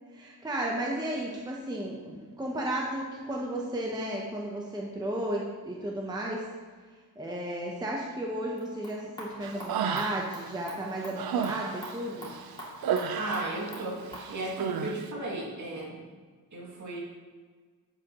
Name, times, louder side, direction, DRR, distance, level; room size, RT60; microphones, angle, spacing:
voice 1, 0.1-6.5 7.2-12.3, right 1 dB, 10° right, -2 dB, 0.7 m, -34 dB
sound 1, 8.6-14.3, equal, 15° left, 2.3 m, -46 dB
Human voice, 9.4-10.5 10.9-13.8 14.1-15.0, right 7 dB, 85° right, 0.7 m, -32 dB
voice 2, 13.2-16.0 16.5-17.0, right 2 dB, 50° right, -3 dB, 2.2 m, -35 dB
11.0 x 7.8 x 2.9 m, 1.5 s
wide cardioid pair, 170°, 36 cm